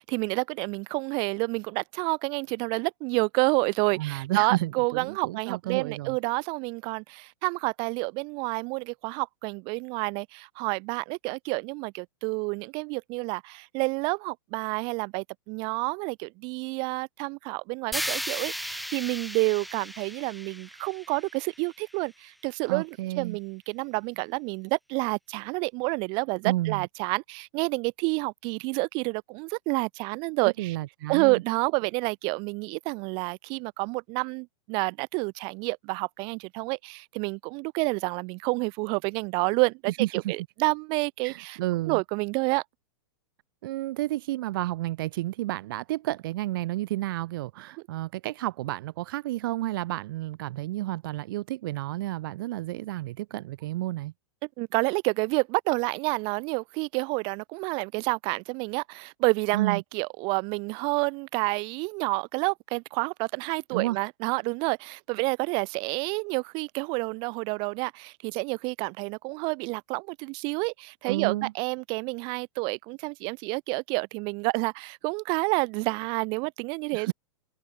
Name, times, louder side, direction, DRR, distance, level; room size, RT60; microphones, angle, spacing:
voice 1, 0.1-30.8 31.1-41.6 41.9-42.6 54.6-77.1, right 30 dB, 35° right, 2.7 m, -29 dB
voice 2, 3.9-6.2 22.7-23.4 26.4-26.9 30.4-31.4 40.0-40.3 41.2-42.0 43.6-54.1 59.5-59.8 63.7-64.0 71.0-71.5 76.9-77.1, right 16 dB, 55° right, 1.5 m, -31 dB
sound 1, 17.9-22.0, equal, ahead, 1.0 m, -36 dB
supercardioid pair, 155°, 14 cm